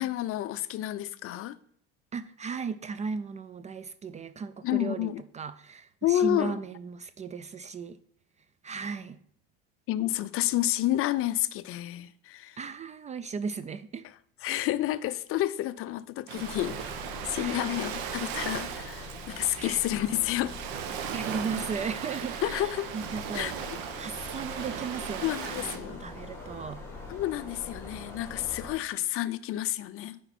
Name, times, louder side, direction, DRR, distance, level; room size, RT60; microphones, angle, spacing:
voice 1, 0.0-1.6 4.6-5.2 6.0-6.6 9.9-12.6 14.4-17.0 17.3-20.6 22.4-22.9 23.3-23.5 25.2-26.0 27.1-30.2, left 14 dB, 45° left, 0.5 m, -30 dB
voice 2, 2.1-8.0 8.6-9.2 12.6-14.1 17.3-17.7 19.6-19.8 21.1-23.5 24.0-26.8, right 5 dB, 25° right, 0.3 m, -36 dB
Ocean, 16.3-25.8, right 8 dB, 75° right, 1.0 m, -37 dB
sound 1, 16.4-28.7, left 3 dB, 10° left, 2.3 m, -44 dB
9.8 x 4.6 x 4.2 m
supercardioid pair, 90°, 31 cm